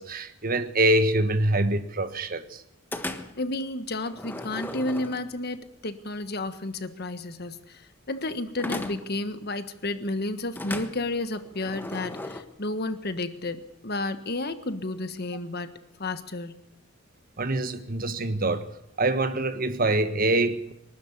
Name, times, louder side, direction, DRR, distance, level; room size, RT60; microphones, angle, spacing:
voice 1, 0.0-2.6 17.4-18.7 19.0-20.7, right 2 dB, 45° right, 1.5 m, -25 dB
sound 1, 2.9-3.5 4.1-5.6 8.6-9.2 10.6-12.4, left 1 dB, 10° left, 1.4 m, -36 dB
voice 2, 3.4-16.6, left 2 dB, 50° left, 1.5 m, -32 dB
24.0 x 12.5 x 9.8 m
head